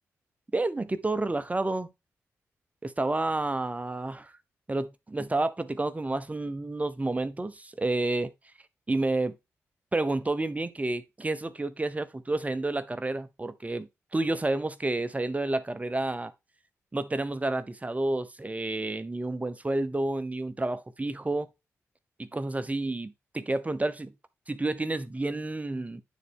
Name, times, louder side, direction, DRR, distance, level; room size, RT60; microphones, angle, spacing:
voice 1, 0.5-1.9 2.8-4.3 4.7-8.3 8.9-9.4 9.9-16.3 16.9-21.5 22.2-24.1 24.5-26.0, right 2 dB, 25° right, 0.9 m, -30 dB
9.2 x 4.1 x 3.5 m
supercardioid pair, 45°, 6 cm